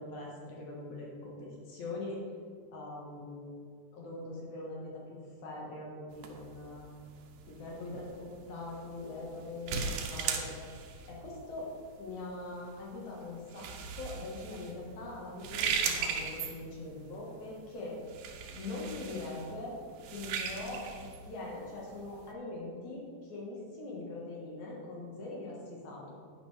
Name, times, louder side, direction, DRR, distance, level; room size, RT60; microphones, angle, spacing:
voice 1, 0.0-2.2 2.7-3.6 3.9-6.9 7.5-10.7 11.1-11.7 12.0-18.0 18.6-19.8 20.1-26.1, left 2 dB, 60° left, -3 dB, 2.8 m, -42 dB
sound 1, 6.1-22.3, right 6 dB, 75° right, 2.4 m, -39 dB
10.0 x 9.9 x 3.4 m, 2.1 s
omnidirectional pair, 4.0 m